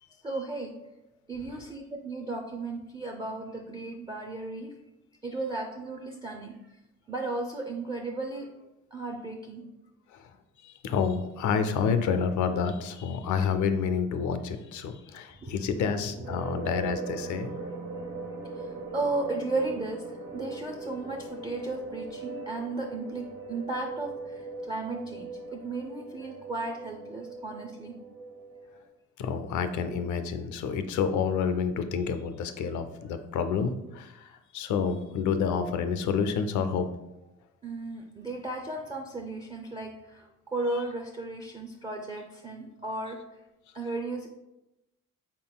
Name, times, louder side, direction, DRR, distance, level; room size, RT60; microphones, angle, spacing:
voice 1, 0.2-0.7 1.3-4.7 5.2-6.6 7.1-8.5 8.9-9.6 15.4-15.6 18.9-20.0 20.3-27.9 37.6-43.2 43.7-44.3, right 2 dB, 15° right, 1 dB, 0.4 m, -35 dB
voice 2, 10.6-17.5 29.2-36.9, left 6 dB, 75° left, 9 dB, 0.5 m, -29 dB
sound 1, 16.2-28.9, right 3 dB, 70° right, 1.0 m, -40 dB
3.9 x 3.7 x 2.2 m, 0.94 s
cardioid pair, 90°, 30 cm